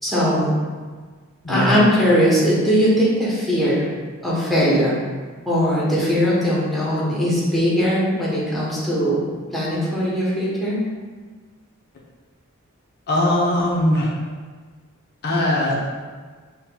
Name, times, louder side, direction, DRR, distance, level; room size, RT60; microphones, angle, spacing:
voice 1, 0.0-0.5 1.5-3.9 4.2-5.0 5.5-9.2 9.5-10.8, equal, ahead, -8 dB, 1.0 m, -19 dB
voice 2, 13.1-14.1 15.2-15.9, left 1 dB, 50° left, -4 dB, 0.7 m, -20 dB
7.3 x 2.9 x 2.2 m, 1.5 s
head